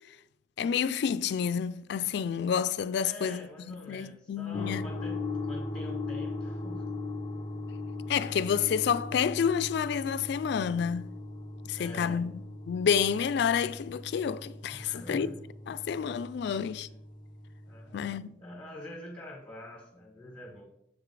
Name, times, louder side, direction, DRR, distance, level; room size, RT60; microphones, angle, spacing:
voice 1, 0.6-4.9 8.1-11.2 11.7-12.3 12.7-15.3 15.7-16.9 17.9-18.4, left 7 dB, 60° left, 0.3 m, -29 dB
voice 2, 2.9-6.8 11.7-12.2 14.7-15.3 16.4-16.8 17.6-20.6, left 1 dB, 10° left, 1.5 m, -46 dB
sound 1, 4.5-18.2, left 3 dB, 25° left, 0.9 m, -39 dB
7.4 x 3.8 x 4.7 m
head